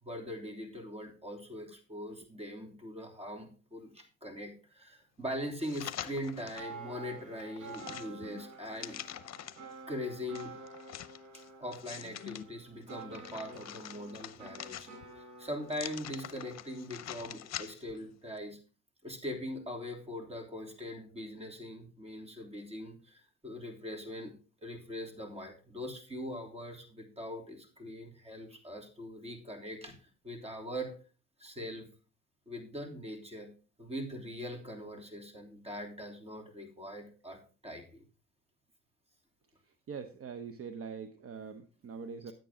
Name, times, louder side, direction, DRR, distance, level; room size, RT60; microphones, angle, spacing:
voice 1, 0.0-9.0 9.9-10.5 11.3-14.9 15.1-18.6 19.0-24.3 24.6-29.9 30.2-30.9 31.4-31.9 32.5-33.5 33.8-38.0, equal, 20° right, 2 dB, 3.3 m, -41 dB
sound 1, 5.6-6.7 7.2-9.7 10.3-12.4 12.9-15.2 15.7-18.0 18.4-18.5, left 12 dB, 60° left, 0.7 m, -45 dB
sound 2, 6.6-17.7, right 4 dB, 80° right, 4.0 m, -50 dB
voice 2, 39.9-42.3, right 6 dB, 50° right, 8 dB, 0.9 m, -43 dB
10.5 x 8.8 x 3.7 m, 0.36 s
cardioid pair, 90°, 30 cm